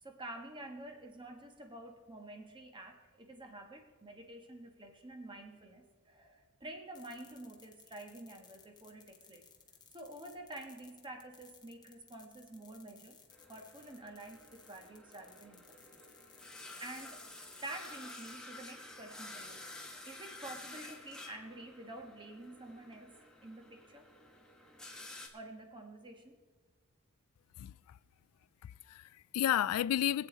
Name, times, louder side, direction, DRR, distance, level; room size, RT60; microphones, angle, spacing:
voice 1, 0.0-9.4 9.9-13.2 13.5-16.0 16.8-17.2 17.6-23.1 23.4-24.1 25.3-26.4, right 1 dB, 20° right, 1.4 m, -49 dB
sound 1, 6.9-18.4, left 6 dB, 20° left, 1.0 m, -61 dB
sound 2, 13.3-25.3, left 2 dB, 5° left, 1.3 m, -51 dB
voice 2, 27.6-28.0 28.6-30.3, left 11 dB, 70° left, 0.3 m, -32 dB
22.5 x 8.5 x 4.0 m
head